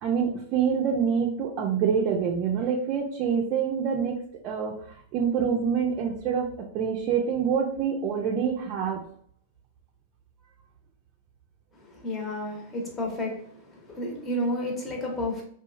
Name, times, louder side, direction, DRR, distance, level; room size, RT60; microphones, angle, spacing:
voice 1, 0.0-4.1 4.4-4.7 5.1-6.5 6.7-9.1, right 7 dB, 45° right, 0 dB, 0.4 m, -26 dB
voice 2, 11.9-15.4, left 1 dB, 20° left, -1 dB, 1.0 m, -31 dB
2.7 x 2.4 x 2.4 m, 0.63 s
hypercardioid pair, 115°, 0 cm